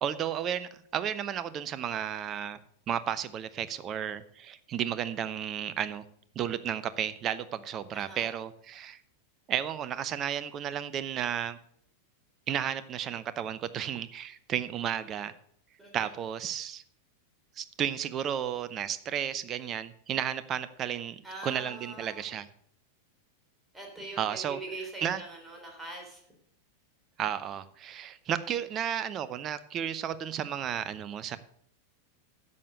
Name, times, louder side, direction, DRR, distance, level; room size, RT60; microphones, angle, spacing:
voice 1, 0.0-2.6 2.9-6.0 6.4-9.0 9.5-11.6 12.5-15.3 15.9-16.8 17.6-22.5 24.2-24.6 25.0-25.2 27.2-31.4, right 9 dB, 30° right, 15 dB, 0.7 m, -33 dB
voice 2, 7.9-8.3 15.8-15.9 21.2-22.3 23.7-26.2, right 2 dB, 5° right, 0 dB, 3.6 m, -42 dB
11.0 x 6.8 x 6.6 m, 0.65 s
figure-of-eight pair, 90°, 0 cm